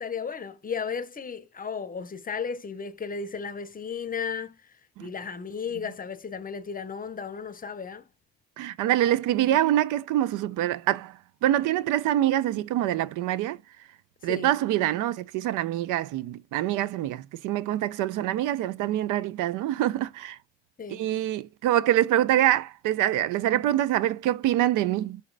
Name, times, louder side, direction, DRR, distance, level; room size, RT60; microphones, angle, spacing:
voice 1, 0.0-8.1 14.2-14.5 20.8-21.0, left 6 dB, 30° left, 0.7 m, -34 dB
voice 2, 8.6-11.1 11.4-13.6 14.2-20.4 20.9-25.2, right 13 dB, 90° right, 0.5 m, -25 dB
4.9 x 2.8 x 3.2 m
cardioid pair, 90°, 30 cm